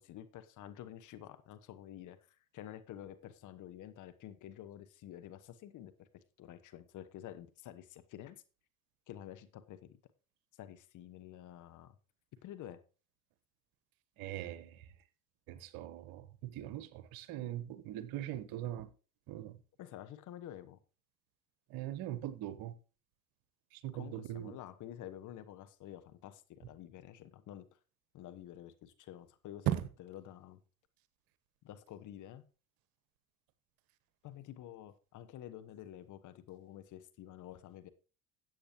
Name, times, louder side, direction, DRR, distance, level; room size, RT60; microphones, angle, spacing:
voice 1, 0.0-2.2 2.5-6.1 6.4-8.4 9.1-10.0 10.6-12.0 12.4-12.8 19.8-20.8 23.9-27.7 28.1-30.6 31.6-32.4 34.2-37.9, left 11 dB, 45° left, 1.2 m, -50 dB
voice 2, 14.2-14.9 15.5-18.9 19.3-19.6 21.7-22.7 23.7-24.6 29.7-29.8, right 13 dB, 55° right, 1.2 m, -40 dB
13.5 x 8.5 x 3.0 m
hypercardioid pair, 70°, 43 cm